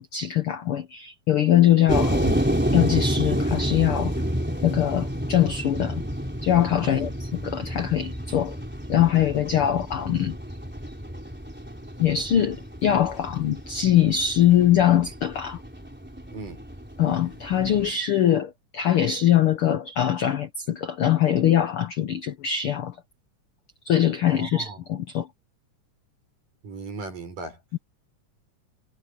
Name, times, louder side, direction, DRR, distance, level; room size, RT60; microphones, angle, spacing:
voice 1, 0.0-2.4 2.7-4.1 4.6-6.0 6.4-8.6 8.9-10.4 12.0-15.6 17.0-23.0 23.8-25.3 27.7-27.8, left 11 dB, 75° left, 1.2 m, -22 dB
sound 1, 1.9-17.9, equal, 5° right, 3.3 m, -29 dB
voice 2, 24.3-24.8 26.6-27.6, right 3 dB, 75° right, 6.9 m, -37 dB
omnidirectional pair, 3.8 m